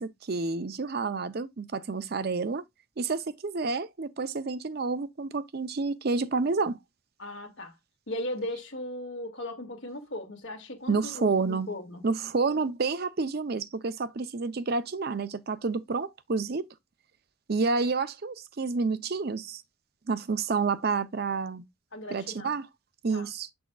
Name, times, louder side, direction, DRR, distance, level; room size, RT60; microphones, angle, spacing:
voice 1, 0.0-2.6 3.0-6.8 10.9-11.7 12.0-16.6 17.5-19.6 20.1-21.6 22.1-22.7 23.0-23.5, right 4 dB, 50° right, 0.5 m, -29 dB
voice 2, 7.2-7.7 8.1-12.0 21.9-22.5 23.1-23.3, left 1 dB, 60° left, 1.8 m, -37 dB
7.0 x 6.2 x 2.3 m
head